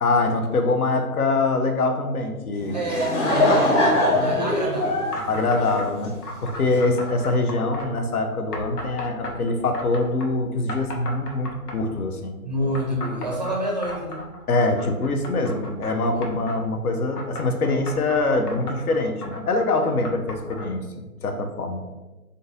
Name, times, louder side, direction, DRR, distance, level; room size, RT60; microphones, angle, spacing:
voice 1, 0.0-2.8 5.3-6.1 6.4-12.3 14.5-21.8, left 2 dB, 70° left, 5 dB, 0.8 m, -24 dB
Laughter / Crowd, 2.6-6.4, left 1 dB, 50° left, 1.5 m, -22 dB
voice 2, 2.7-5.4 12.4-14.4 16.1-16.2, right 1 dB, 30° right, -1 dB, 0.4 m, -28 dB
sound 1, 5.1-5.9 6.2-7.9 8.5-10.3 10.7-12.0 12.7-16.6 17.1-20.7, left 1 dB, 90° left, 1.0 m, -36 dB
3.8 x 2.7 x 3.8 m, 1.1 s
hypercardioid pair, 150°, 45 cm